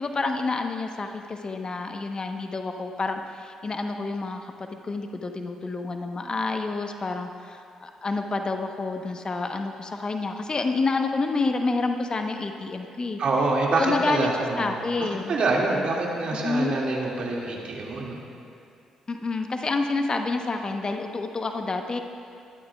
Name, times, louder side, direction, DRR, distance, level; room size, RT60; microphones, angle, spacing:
voice 1, 0.0-13.2 13.8-15.3 16.4-16.7 19.1-22.0, left 3 dB, 40° left, 5 dB, 1.0 m, -28 dB
voice 2, 13.2-14.7 15.0-18.2, right 3 dB, 55° right, -2 dB, 2.2 m, -26 dB
22.0 x 12.5 x 2.4 m, 2.4 s
hypercardioid pair, 45°, 2 cm